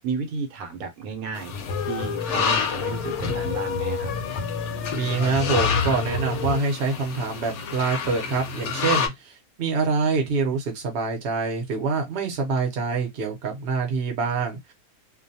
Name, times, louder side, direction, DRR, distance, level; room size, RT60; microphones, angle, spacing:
voice 1, 0.0-4.1, right 5 dB, 75° right, 1.0 m, -33 dB
sound 1, 1.4-9.1, left 6 dB, 65° left, 0.8 m, -30 dB
sound 2, 1.5-6.6, left 5 dB, 85° left, 1.1 m, -29 dB
voice 2, 4.9-14.7, right 4 dB, 50° right, 0.8 m, -25 dB
2.5 x 2.2 x 2.7 m
omnidirectional pair, 1.5 m